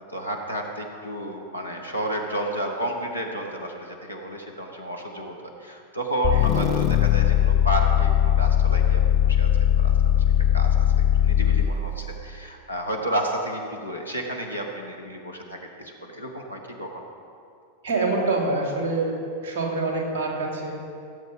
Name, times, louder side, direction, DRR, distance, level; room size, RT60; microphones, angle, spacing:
voice 1, 0.1-9.5 9.8-10.2 10.5-17.0, right 1 dB, 90° left, 0 dB, 1.5 m, -31 dB
sound 1, 6.2-11.9, left 11 dB, 35° left, 0.6 m, -20 dB
voice 2, 17.8-19.1 19.4-20.8, right 3 dB, 50° right, -1 dB, 2.9 m, -26 dB
17.0 x 8.2 x 5.3 m, 2.5 s
figure-of-eight pair, 90°, 0 cm